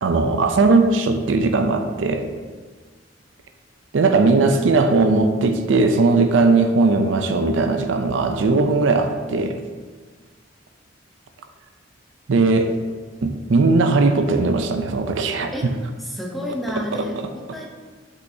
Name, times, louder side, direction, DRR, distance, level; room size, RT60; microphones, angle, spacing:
voice 1, 0.0-2.3 3.9-9.6 12.3-12.7 13.2-15.5, right 3 dB, 75° right, 7 dB, 0.5 m, -18 dB
voice 2, 16.0-17.7, left 1 dB, ahead, -1 dB, 0.7 m, -30 dB
6.2 x 5.6 x 2.7 m, 1.5 s
head